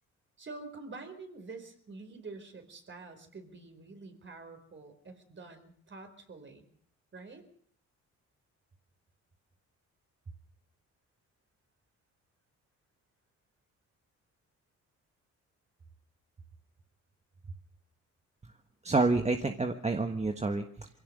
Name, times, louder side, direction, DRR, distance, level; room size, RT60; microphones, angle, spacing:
voice 1, 0.4-6.7 7.1-7.4 17.4-17.6, right 3 dB, 40° right, 6 dB, 4.7 m, -47 dB
voice 2, 18.8-20.9, right 3 dB, 20° right, 6 dB, 1.4 m, -28 dB
23.5 x 17.0 x 6.7 m, 0.63 s
cardioid pair, 90°, 30 cm